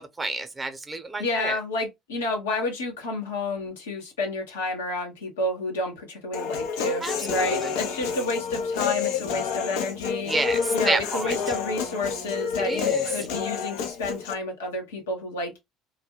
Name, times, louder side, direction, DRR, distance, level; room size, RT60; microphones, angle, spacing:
voice 1, 0.0-1.6 7.0-7.7 10.2-11.3 12.6-13.0, right 2 dB, 20° right, 0.7 m, -29 dB
voice 2, 1.2-10.3 10.7-15.6, left 2 dB, 90° left, 0.9 m, -30 dB
Human voice, 6.3-14.3, left 6 dB, 70° left, 0.5 m, -29 dB
2.1 x 2.1 x 3.4 m
hypercardioid pair, 65°, 0 cm